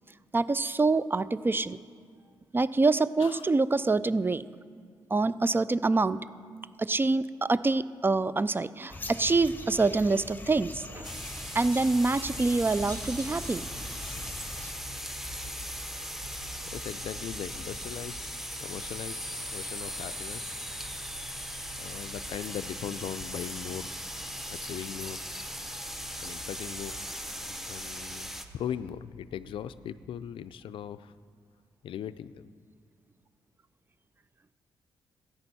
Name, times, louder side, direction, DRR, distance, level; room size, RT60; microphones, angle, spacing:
voice 1, 0.3-1.8 2.5-4.4 5.1-6.3 6.8-11.1 11.5-13.7, right 3 dB, 25° right, 16 dB, 0.4 m, -26 dB
sound 1, 8.9-14.7, left 2 dB, 20° left, 0.9 m, -43 dB
sound 2, 11.0-28.4, equal, 5° right, 1.0 m, -39 dB
sound 3, 12.0-30.9, equal, 65° right, 1.8 m, -49 dB
voice 2, 16.7-18.3 18.6-20.7 21.8-23.9 24.5-25.2 26.2-27.0 27.4-31.1 31.8-32.5, left 9 dB, 70° left, 14 dB, 0.4 m, -39 dB
14.0 x 9.8 x 4.2 m, 2.1 s
supercardioid pair, 60°, 9 cm